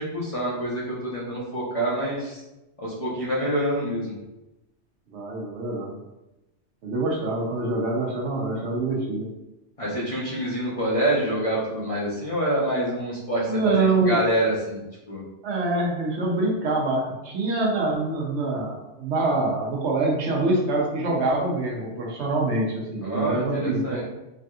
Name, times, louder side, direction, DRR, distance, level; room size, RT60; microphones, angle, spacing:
voice 1, 0.0-2.4 2.8-4.1 9.8-14.8 15.1-15.2 23.0-24.1, right 1 dB, 35° left, -6 dB, 0.6 m, -26 dB
voice 2, 5.1-6.0 6.8-9.3 13.4-14.2 15.4-24.0, right 2 dB, 75° right, -1 dB, 1.0 m, -25 dB
3.3 x 2.7 x 2.3 m, 0.97 s
omnidirectional pair, 1.2 m